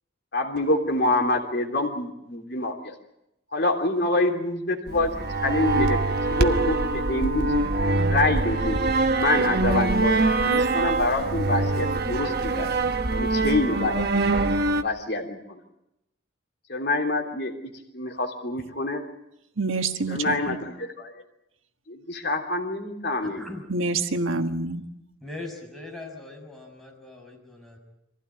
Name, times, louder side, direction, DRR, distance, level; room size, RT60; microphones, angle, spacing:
voice 1, 0.3-2.9 3.5-6.0 6.3-7.5 8.0-8.8 9.1-12.8 13.1-14.3 14.7-15.6 16.7-19.0 20.1-21.2 21.9-23.4, left 2 dB, 55° left, 3.2 m, -26 dB
sound 1, 4.9-14.8, right 2 dB, 50° right, 1.2 m, -24 dB
voice 2, 19.6-20.6 23.7-24.8, right 3 dB, 85° right, 1.6 m, -27 dB
voice 3, 23.2-23.6 25.2-27.8, left 2 dB, ahead, 6.1 m, -40 dB
25.5 x 16.0 x 9.7 m
head